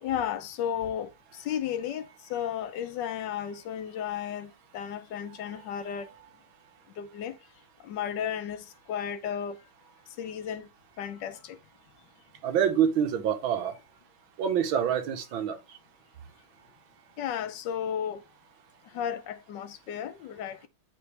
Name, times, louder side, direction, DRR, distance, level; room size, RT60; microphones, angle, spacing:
voice 1, 0.0-6.1 7.0-7.4 7.8-9.6 10.2-10.7 11.0-11.6 17.2-18.2 18.9-20.7, left 9 dB, 75° left, 1.2 m, -34 dB
voice 2, 12.4-13.7 14.4-15.6, right 8 dB, 85° right, 1.8 m, -26 dB
9.7 x 3.4 x 3.2 m
omnidirectional pair, 2.1 m